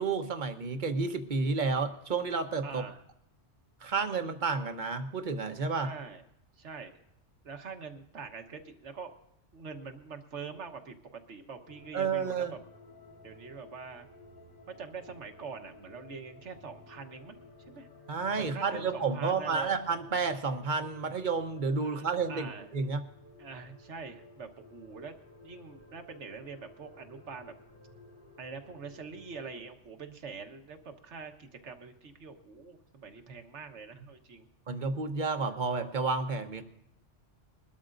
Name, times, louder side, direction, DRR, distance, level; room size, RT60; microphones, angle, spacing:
voice 1, 0.0-2.8 3.8-5.9 11.9-12.5 18.1-23.0 34.7-36.6, right 4 dB, 40° right, 8 dB, 1.1 m, -31 dB
voice 2, 2.6-3.0 5.8-6.2 6.6-7.0 7.4-9.1 9.5-12.6 13.2-14.1 14.8-17.4 17.7-17.9 18.4-19.9 21.8-22.7 23.4-25.1 25.4-27.5 28.4-34.5, right 5 dB, 70° right, 6 dB, 1.5 m, -44 dB
sound 1, 11.7-29.6, left 2 dB, 45° left, 2.4 m, -55 dB
22.0 x 13.0 x 2.6 m, 0.79 s
omnidirectional pair, 1.2 m